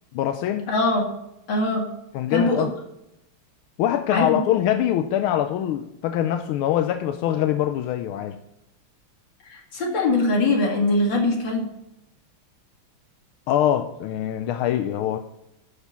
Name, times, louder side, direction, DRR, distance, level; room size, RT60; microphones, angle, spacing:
voice 1, 0.1-0.7 2.1-2.7 3.8-8.4 13.5-15.2, left 11 dB, 85° left, 8 dB, 1.5 m, -23 dB
voice 2, 0.7-1.1 1.5-1.9 2.3-2.7 4.1-4.4 9.4-11.7, left 2 dB, 60° left, 1 dB, 2.9 m, -22 dB
11.5 x 4.6 x 7.0 m, 0.84 s
omnidirectional pair, 2.3 m